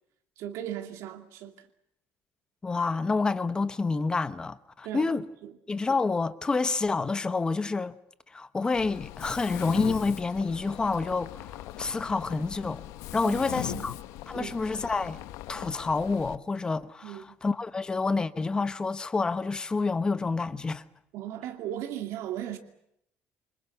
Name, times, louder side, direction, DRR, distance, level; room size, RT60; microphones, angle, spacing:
voice 1, 0.4-1.7 4.8-5.5 13.2-13.4 13.7-13.8 14.3-14.5 17.0-17.3 21.1-22.6, right 11 dB, 70° right, 2.4 m, -37 dB
voice 2, 2.6-5.2 5.7-8.0 8.3-12.8 13.1-14.0 14.3-15.2 15.5-20.8, left 3 dB, 15° left, 1.1 m, -28 dB
Mechanisms, 8.7-16.3, left 16 dB, 90° left, 1.2 m, -40 dB
28.0 x 25.5 x 7.0 m
cardioid pair, 160°, 5 cm